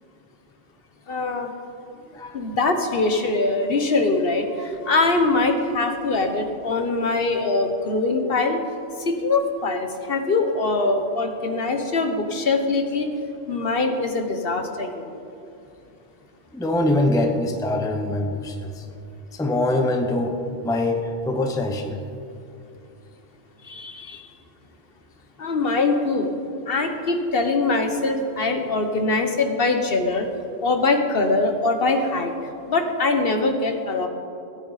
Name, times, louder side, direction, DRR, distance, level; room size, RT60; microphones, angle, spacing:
voice 1, 1.1-1.5 2.3-8.6 9.0-13.1 13.5-15.2 23.6-24.3 25.4-26.3 26.7-30.3 30.6-32.3 32.7-34.1, left 3 dB, 55° left, 5 dB, 1.2 m, -23 dB
voice 2, 16.5-18.8 19.3-22.0, left 1 dB, 5° left, 5 dB, 0.7 m, -24 dB
17.0 x 9.8 x 4.0 m, 2.7 s
omnidirectional pair, 1.2 m